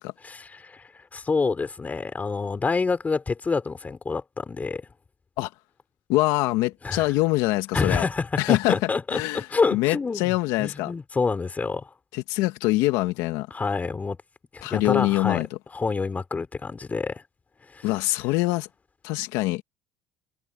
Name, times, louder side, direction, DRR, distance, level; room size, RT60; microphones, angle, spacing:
voice 1, 0.2-4.8 6.8-7.1 7.7-10.3 10.6-11.9 13.5-14.2 14.5-15.4 15.7-17.2 17.7-17.9, left 4 dB, 25° left, 4.1 m, -27 dB
voice 2, 6.1-8.0 8.4-10.9 12.1-13.5 14.6-15.6 17.8-18.7 19.0-19.6, left 19 dB, 75° left, 1.8 m, -24 dB
supercardioid pair, 85°, 6 cm